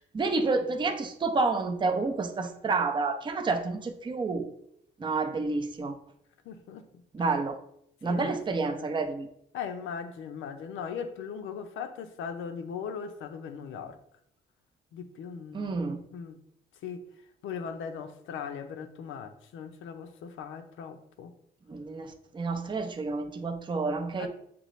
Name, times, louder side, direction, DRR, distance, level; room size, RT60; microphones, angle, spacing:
voice 1, 0.0-4.5 5.0-6.0 7.1-7.6 8.0-9.3 15.5-16.0 21.7-24.3, right 3 dB, 25° right, 0.5 m, -29 dB
voice 2, 6.4-7.0 8.0-8.4 8.7-8.9 9.5-14.0 14.9-16.4 16.8-17.1 17.4-21.3 24.2-24.3, left 6 dB, 80° left, 0.6 m, -39 dB
6.8 x 2.4 x 3.1 m
cardioid pair, 90°, 20 cm